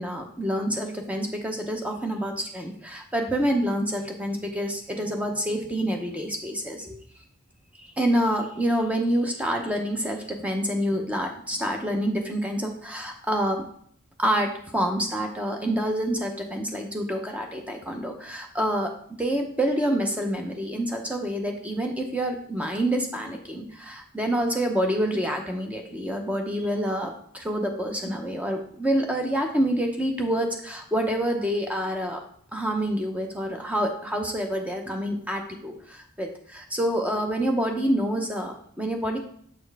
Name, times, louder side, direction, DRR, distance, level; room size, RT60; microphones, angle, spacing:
voice 1, 0.0-7.0 7.8-13.6 14.2-18.9 19.2-32.2 32.5-39.2, equal, 5° right, 3 dB, 0.7 m, -27 dB
7.2 x 4.3 x 3.3 m, 0.63 s
head